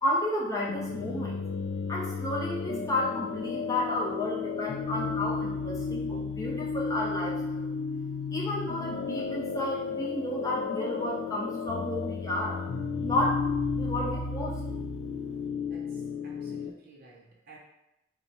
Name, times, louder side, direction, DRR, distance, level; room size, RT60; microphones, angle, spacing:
voice 1, 0.0-1.4 1.9-7.7 8.3-12.6 13.0-13.4 13.7-14.6, left 1 dB, 20° left, -4 dB, 0.7 m, -32 dB
sound 1, 0.7-16.7, left 5 dB, 75° left, 0.3 m, -33 dB
voice 2, 15.7-17.6, right 2 dB, 55° right, -2 dB, 0.5 m, -54 dB
2.9 x 2.2 x 4.0 m, 0.88 s
head